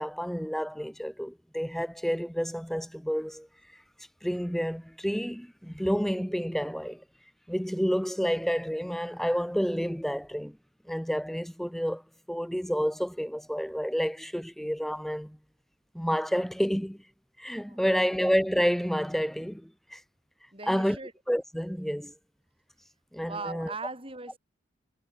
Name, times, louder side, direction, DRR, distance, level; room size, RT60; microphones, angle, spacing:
voice 1, 0.0-3.5 4.2-7.0 7.5-10.6 10.9-12.0 12.3-15.4 15.9-17.0 17.4-20.0 20.7-21.0 21.3-22.1 23.1-23.7, equal, ahead, 1.4 m, -29 dB
voice 2, 17.7-18.1 20.5-21.1 23.2-24.4, right 3 dB, 30° right, 5.9 m, -39 dB
head